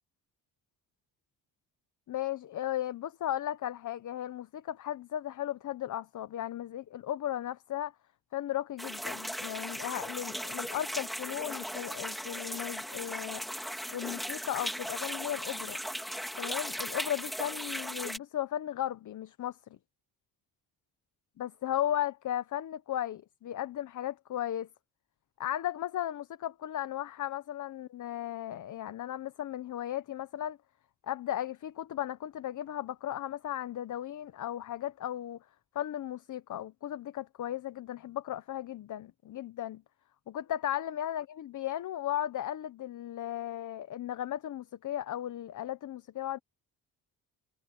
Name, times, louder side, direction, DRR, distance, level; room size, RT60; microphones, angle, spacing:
voice 1, 2.1-7.9 8.3-13.4 13.9-15.8 16.4-19.6 21.4-24.7 25.4-30.6 31.0-35.4 35.7-39.8 40.3-46.4, left 11 dB, 55° left, 0.8 m, -36 dB
sound 1, 8.8-18.2, equal, ahead, 2.3 m, -37 dB
wide cardioid pair, 160°, 37 cm